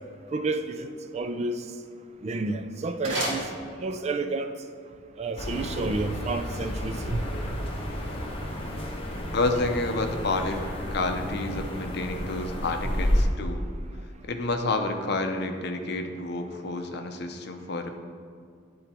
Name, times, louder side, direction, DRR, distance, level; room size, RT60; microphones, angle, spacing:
voice 1, 0.3-1.6 2.2-3.5 3.8-4.5 5.2-7.2, right 3 dB, 35° right, 8 dB, 0.3 m, -30 dB
sound 1, 2.1-4.2, right 1 dB, 75° right, 1.8 m, -34 dB
sound 2, 5.4-13.2, equal, 30° left, 0.9 m, -31 dB
voice 2, 9.3-10.6 10.9-13.6 14.2-18.0, left 2 dB, 60° left, 6 dB, 0.6 m, -29 dB
10.0 x 3.9 x 4.3 m, 2.2 s
head